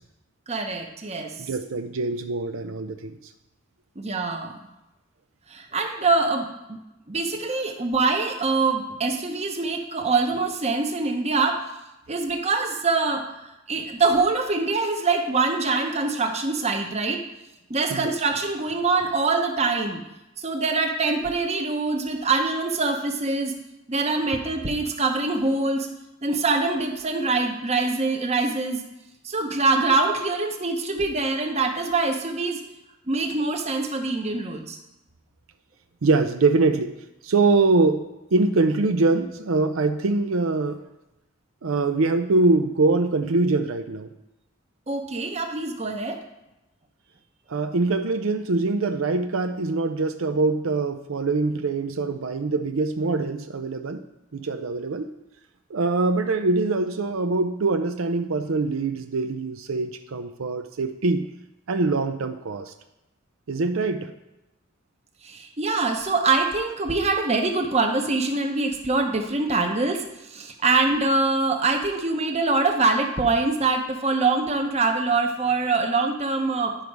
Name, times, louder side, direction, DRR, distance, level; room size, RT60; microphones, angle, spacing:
voice 1, 0.5-1.3 4.0-4.5 5.5-6.8 7.1-11.6 12.1-13.3 13.7-17.2 17.7-20.0 20.4-23.5 23.9-25.9 26.2-28.8 29.2-32.6 33.1-34.8 44.9-46.2 65.2-76.8, right 3 dB, 30° right, 4 dB, 0.9 m, -24 dB
voice 2, 1.4-3.2 17.9-18.1 36.0-37.0 37.2-40.9 41.6-44.1 47.5-54.0 54.3-55.1 55.7-61.3 61.7-62.7 63.5-64.1, right 3 dB, 85° right, 7 dB, 0.6 m, -23 dB
10.5 x 5.3 x 4.7 m, 0.95 s
head